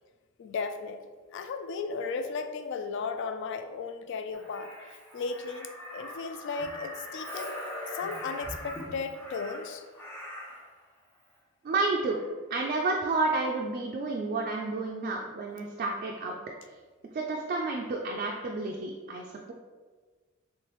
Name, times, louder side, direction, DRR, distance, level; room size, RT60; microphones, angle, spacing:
voice 1, 0.4-1.0 1.3-4.7 5.1-7.6 7.9-9.8, left 4 dB, 60° left, 8 dB, 0.3 m, -35 dB
Crow, 4.3-10.7 12.1-12.3, equal, 10° left, 0.6 m, -41 dB
voice 2, 11.6-12.2 12.5-16.4 17.1-19.5, right 3 dB, 40° right, 0 dB, 0.3 m, -30 dB
3.2 x 3.1 x 3.0 m, 1.4 s
head